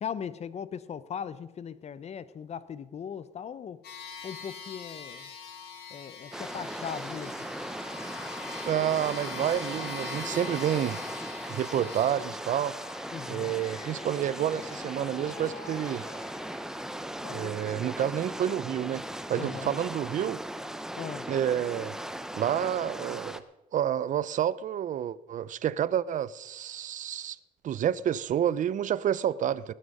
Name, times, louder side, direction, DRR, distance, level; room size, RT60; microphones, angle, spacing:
voice 1, 0.0-3.8 4.2-5.3 5.9-7.5 11.7-11.9 13.1-13.6 17.2-17.6 19.4-19.7 21.0-21.3, left 7 dB, 40° left, 0.8 m, -39 dB
sound 1, 3.8-17.5, left 5 dB, 70° left, 2.7 m, -44 dB
sound 2, 6.3-23.4, right 1 dB, 5° right, 0.8 m, -38 dB
voice 2, 8.7-11.0 11.5-12.8 13.3-16.0 17.3-20.4 21.3-21.9 22.3-23.4 23.7-27.4 27.6-29.7, right 10 dB, 50° right, 0.6 m, -29 dB
19.0 x 9.9 x 5.4 m
cardioid pair, 110°, 17 cm